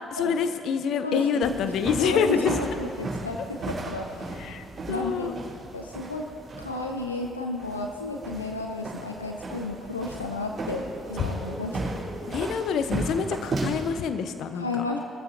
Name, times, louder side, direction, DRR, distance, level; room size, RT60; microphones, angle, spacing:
voice 1, 0.1-2.5 4.4-5.3 11.2-11.3 12.3-14.8, left 6 dB, 55° left, 9 dB, 0.9 m, -26 dB
sound 1, 1.4-13.9, right 2 dB, 35° right, 3.9 m, -35 dB
voice 2, 2.0-4.3 4.9-5.4 5.7-11.8 14.5-15.0, left 2 dB, 85° left, 2 dB, 0.6 m, -32 dB
sound 2, 4.7-13.0, equal, 10° right, 4.2 m, -46 dB
21.5 x 14.0 x 2.8 m, 2.2 s
figure-of-eight pair, 45°, 0 cm